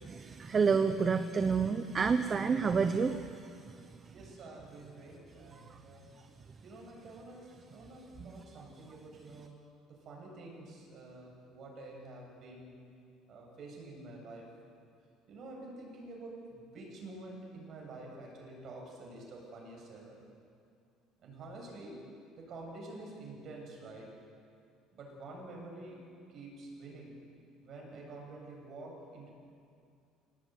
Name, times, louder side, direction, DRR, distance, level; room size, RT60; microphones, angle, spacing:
voice 1, 0.2-3.5 3.8-3.9, right 5 dB, 25° right, 9 dB, 0.9 m, -29 dB
voice 2, 4.1-6.2 6.6-9.6 9.9-12.8 13.3-14.5 15.3-20.2 21.2-22.1 22.3-24.2 24.9-27.2 27.6-29.3, right 2 dB, 40° right, 0 dB, 7.6 m, -48 dB
26.0 x 19.0 x 9.5 m, 2.4 s
cardioid pair, 160°, 0 cm